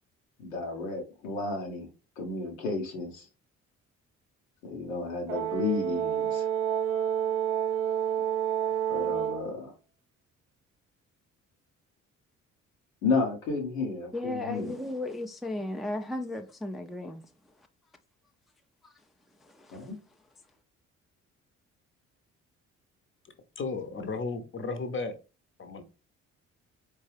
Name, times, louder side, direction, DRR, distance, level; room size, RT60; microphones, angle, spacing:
voice 1, 0.4-1.9 2.2-3.3 4.6-6.5 8.9-9.7 13.0-14.7 19.7-20.0, left 4 dB, 75° left, 1.1 m, -32 dB
Brass instrument, 5.3-9.5, right 9 dB, 80° right, 0.7 m, -29 dB
voice 2, 14.1-17.2 18.8-18.9 19.4-19.9, left 1 dB, ahead, 0.5 m, -35 dB
voice 3, 23.6-25.1 25.6-25.8, left 4 dB, 30° left, 0.9 m, -34 dB
4.4 x 3.3 x 3.3 m
figure-of-eight pair, 45°, 39 cm